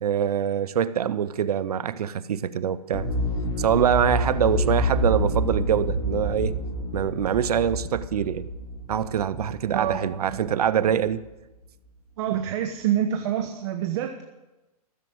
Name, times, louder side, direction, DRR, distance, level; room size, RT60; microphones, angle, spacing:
voice 1, 0.0-3.1 3.6-6.6 6.9-8.5 8.9-11.3, right 9 dB, 70° right, 0.7 m, -24 dB
sound 1, 2.9-10.7 11.0-11.1, equal, 25° left, 3.3 m, -28 dB
voice 2, 9.7-10.6 12.2-14.2, right 10 dB, 45° right, 1.1 m, -27 dB
15.0 x 7.6 x 7.8 m
hypercardioid pair, 130°, 20 cm